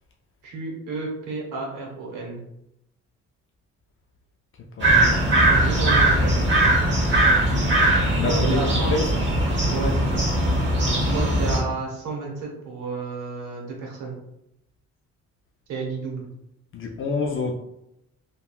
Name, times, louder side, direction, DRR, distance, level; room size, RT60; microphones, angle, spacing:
voice 1, 0.4-2.4 5.5-6.4 8.2-9.0 9.7-10.2 11.1-14.2 15.7-16.3, right 4 dB, 85° right, -1 dB, 1.0 m, -31 dB
voice 2, 4.8-5.3 8.2-9.0 16.7-17.5, left 4 dB, 45° left, 1 dB, 0.4 m, -27 dB
sound 1, 4.8-11.6, right 1 dB, 40° right, 1.1 m, -20 dB
3.5 x 2.2 x 2.3 m, 0.81 s
cardioid pair, 90°, 30 cm